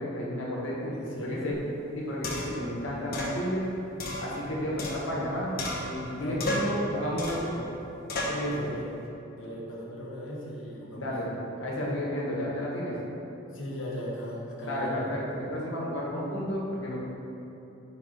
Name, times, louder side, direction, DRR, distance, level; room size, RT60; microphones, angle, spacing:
voice 1, 0.0-0.9 1.2-1.5 1.9-3.6 4.2-7.6 8.3-8.7 10.9-12.9 14.6-17.0, equal, 85° left, -5 dB, 1.4 m, -32 dB
voice 2, 0.9-1.5 6.2-6.9 8.4-8.9 9.4-11.1 13.5-14.9, equal, 70° left, -4 dB, 1.2 m, -38 dB
sound 1, 1.5-1.6 2.2-2.6 3.1-3.4 4.0-5.3 5.6-6.1 6.4-6.8 7.2-7.5 8.1-8.4, left 1 dB, 50° left, 1.1 m, -33 dB
5.3 x 4.5 x 5.0 m, 3.0 s
head